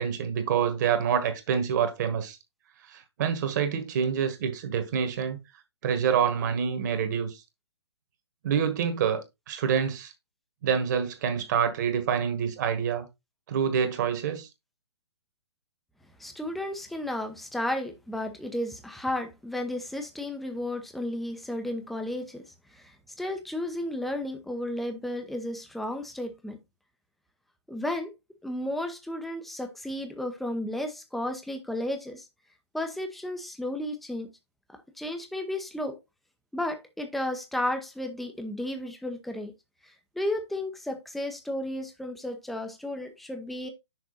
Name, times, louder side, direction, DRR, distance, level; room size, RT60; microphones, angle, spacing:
voice 1, 0.0-2.4 2.9-5.4 5.8-7.4 8.4-10.1 10.6-13.1 13.5-14.5, right 7 dB, 40° right, 1.7 m, -27 dB
voice 2, 16.2-22.4 22.7-26.6 27.7-28.1 28.4-32.3 32.7-34.3 35.0-36.0 36.5-39.5 40.2-43.7, left 1 dB, ahead, 0.7 m, -33 dB
6.4 x 4.5 x 4.1 m
figure-of-eight pair, 130°, 14 cm